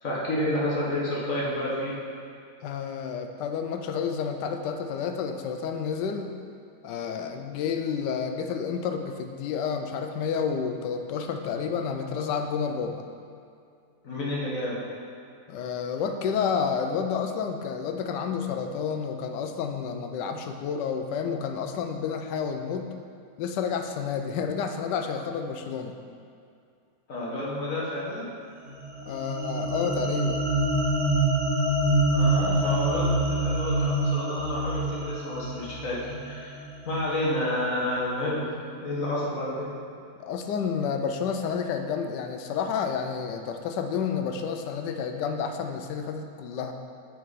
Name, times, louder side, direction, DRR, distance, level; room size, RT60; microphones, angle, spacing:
voice 1, 0.0-1.9 14.0-14.8 27.1-28.3 32.1-39.7, left 1 dB, 55° left, -5 dB, 1.6 m, -30 dB
voice 2, 2.6-6.3 6.8-13.1 15.5-22.9 23.4-26.0 29.0-30.4 40.2-46.7, left 6 dB, 85° left, 6 dB, 1.2 m, -30 dB
sound 1, 28.7-37.1, right 1 dB, 35° right, 1.9 m, -26 dB
7.4 x 4.7 x 4.1 m, 2.4 s
omnidirectional pair, 1.8 m